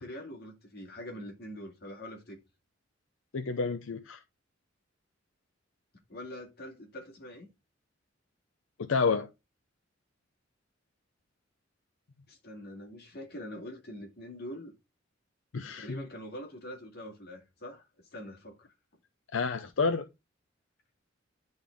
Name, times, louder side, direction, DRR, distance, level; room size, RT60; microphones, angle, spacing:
voice 1, 0.0-2.4 6.1-7.5 12.3-14.7 15.6-17.9 18.1-18.6, equal, 55° left, 2.2 m, -44 dB
voice 2, 3.3-4.2 8.8-9.3 15.5-16.0 19.3-20.1, left 4 dB, 85° left, 0.6 m, -29 dB
10.5 x 4.0 x 3.5 m
head